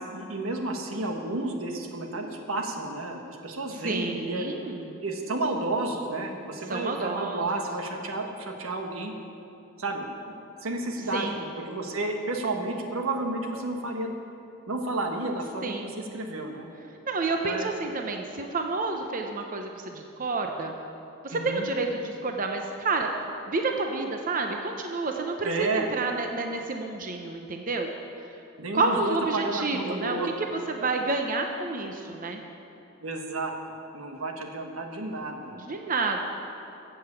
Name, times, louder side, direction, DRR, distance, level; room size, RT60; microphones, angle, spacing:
voice 1, 0.0-4.5 5.0-9.1 9.8-10.0 10.6-11.3 11.7-14.1 14.7-16.7 17.4-17.7 21.3-21.6 25.4-25.9 28.6-30.5 33.0-33.5 33.9-35.5, right 2 dB, 85° right, 3 dB, 1.5 m, -31 dB
voice 2, 3.8-5.0 6.7-7.5 11.1-11.4 15.6-15.9 17.0-20.8 21.2-23.1 23.5-27.9 28.7-30.2 30.7-32.4 35.6-36.2, right 3 dB, 40° right, 3 dB, 0.8 m, -29 dB
15.0 x 7.8 x 7.0 m, 2.7 s
head